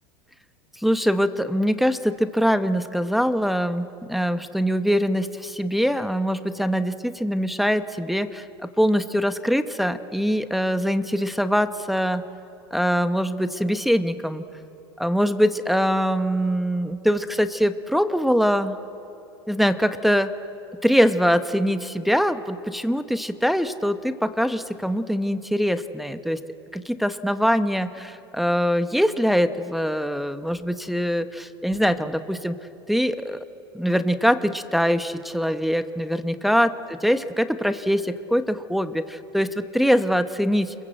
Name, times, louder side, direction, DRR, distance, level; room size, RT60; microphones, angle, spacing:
voice 1, 0.8-12.2 12.7-14.4 15.0-18.8 19.5-20.3 20.8-26.4 26.7-32.6 32.9-33.4 33.7-40.7, equal, ahead, 9 dB, 1.0 m, -23 dB
28.0 x 22.0 x 8.0 m, 2.9 s
hypercardioid pair, 100°, 13 cm